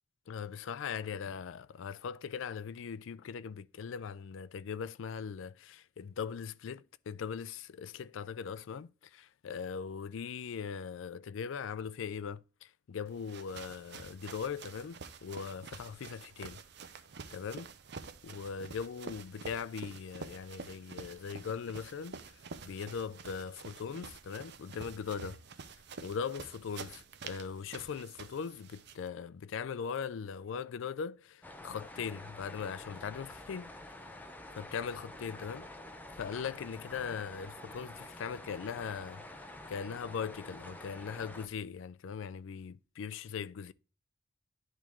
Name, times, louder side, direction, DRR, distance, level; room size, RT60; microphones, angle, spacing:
voice 1, 0.3-16.6 17.3-17.7 18.2-25.4 26.0-33.7 34.5-35.7 36.1-39.2 39.7-43.7, left 6 dB, 65° left, 0.4 m, -40 dB
sound 1, 13.1-29.1, right 5 dB, 55° right, 0.6 m, -48 dB
sound 2, 31.4-41.5, left 1 dB, 10° left, 0.6 m, -48 dB
10.5 x 3.6 x 3.0 m
head